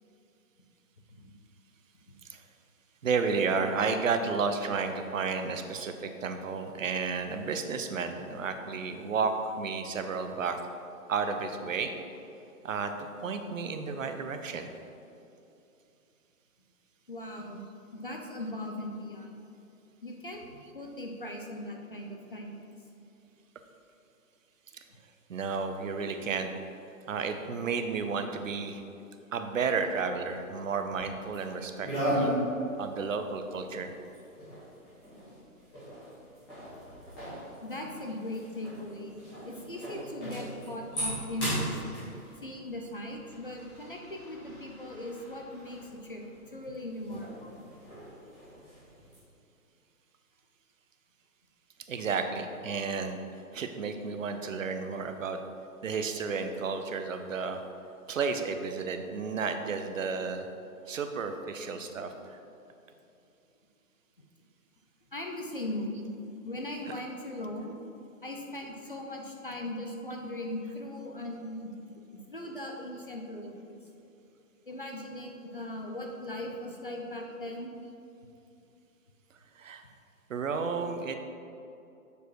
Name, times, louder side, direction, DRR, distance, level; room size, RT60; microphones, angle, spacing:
voice 1, 3.0-10.6 11.1-11.9 12.6-12.9 13.2-14.7 24.7-24.8 25.3-26.5 27.1-28.8 29.3-32.3 32.8-33.9 42.8-42.9 51.9-53.2 53.5-55.4 55.8-57.6 58.1-60.5 60.9-62.4 66.9-67.0 79.6-79.8 80.3-81.1, right 5 dB, 60° right, 7 dB, 0.7 m, -32 dB
voice 2, 17.1-17.6 17.9-19.3 20.0-22.8 37.6-41.8 42.4-47.6 65.1-66.1 66.4-67.8 68.2-73.8 74.7-77.7, left 1 dB, 40° left, 1 dB, 0.5 m, -39 dB
sound 1, 29.8-31.6 31.8-49.2, right 1 dB, 5° left, 1.0 m, -38 dB
6.9 x 4.8 x 4.6 m, 2.7 s
hypercardioid pair, 175°, 44 cm